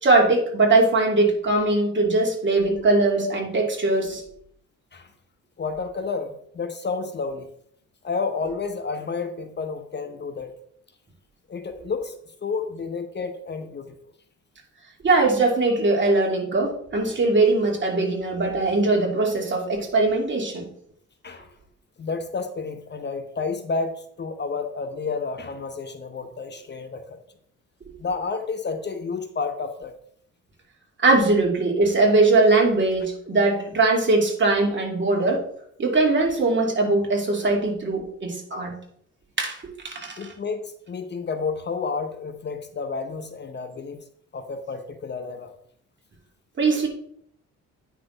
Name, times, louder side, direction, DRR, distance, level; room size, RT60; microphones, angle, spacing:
voice 1, 0.0-4.2 15.0-20.7 27.8-27.9 31.0-35.4 35.8-38.7 39.4-40.3 46.6-46.9, right 2 dB, 40° right, 0 dB, 2.7 m, -21 dB
voice 2, 5.6-7.5 8.0-10.5 11.5-12.1 12.4-13.9 21.2-21.5 22.0-27.2 28.0-29.9 40.2-44.0 44.3-45.5, left 4 dB, 35° left, 8 dB, 0.8 m, -30 dB
9.0 x 6.0 x 3.9 m, 0.67 s
cardioid pair, 90°, 30 cm